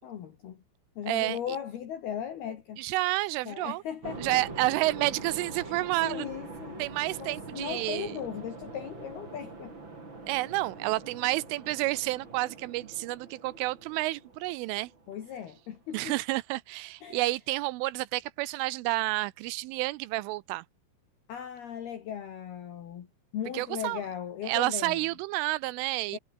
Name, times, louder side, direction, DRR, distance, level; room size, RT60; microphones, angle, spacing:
voice 1, 0.0-0.6 1.0-2.8 3.5-4.4 5.6-6.9 7.2-9.7 15.1-16.2 17.0-17.3 21.3-23.1 23.3-25.0 26.1-26.2, left 9 dB, 55° left, 3.8 m, -38 dB
voice 2, 1.1-1.4 2.8-3.8 4.2-6.3 6.8-8.1 10.3-14.9 15.9-20.6 23.5-24.0 24.4-26.2, right 20 dB, 85° right, 3.2 m, -30 dB
sound 1, 4.0-15.5, right 3 dB, 25° right, 5.3 m, -44 dB
omnidirectional pair, 5.7 m